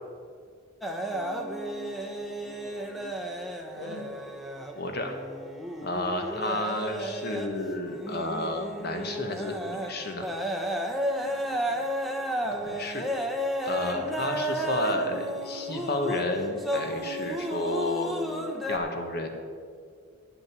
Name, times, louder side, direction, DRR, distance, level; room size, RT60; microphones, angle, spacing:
sound 1, 0.8-18.8, equal, ahead, 0.9 m, -33 dB
voice 1, 1.0-3.3 3.7-4.3 5.8-6.0 11.2-11.9, left 1 dB, 65° left, 1 dB, 2.2 m, -46 dB
voice 2, 4.8-5.1 5.8-10.3 12.5-13.1 13.6-19.3, left 1 dB, 50° left, 4 dB, 1.4 m, -31 dB
10.5 x 7.7 x 7.4 m, 2.1 s
head